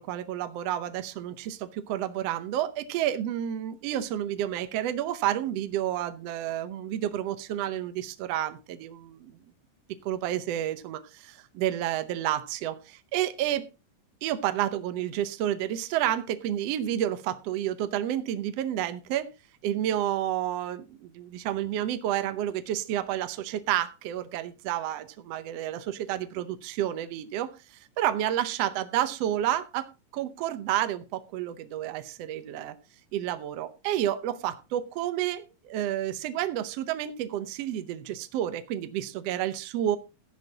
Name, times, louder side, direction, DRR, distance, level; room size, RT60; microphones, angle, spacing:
voice 1, 0.0-9.4 10.0-13.7 14.2-19.3 19.6-29.9 30.1-32.7 33.1-40.0, right 12 dB, 75° right, 11 dB, 1.5 m, -30 dB
14.0 x 11.0 x 2.8 m, 0.27 s
omnidirectional pair, 3.8 m